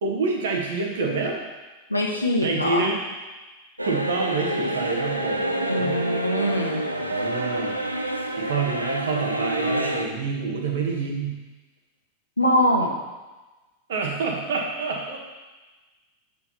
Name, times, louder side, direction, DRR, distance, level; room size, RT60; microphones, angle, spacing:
voice 1, 0.0-1.4 2.4-3.0 3.8-6.0 7.0-7.8 8.4-11.4 13.9-15.2, right 4 dB, 60° right, 1 dB, 1.4 m, -27 dB
voice 2, 1.9-2.9 5.7-6.8 12.4-13.0, left 1 dB, 85° left, 0 dB, 1.1 m, -23 dB
sound 1, 3.8-10.1, right 1 dB, 90° right, 0.6 m, -27 dB
8.5 x 4.9 x 4.3 m, 1.2 s
figure-of-eight pair, 90°, 0 cm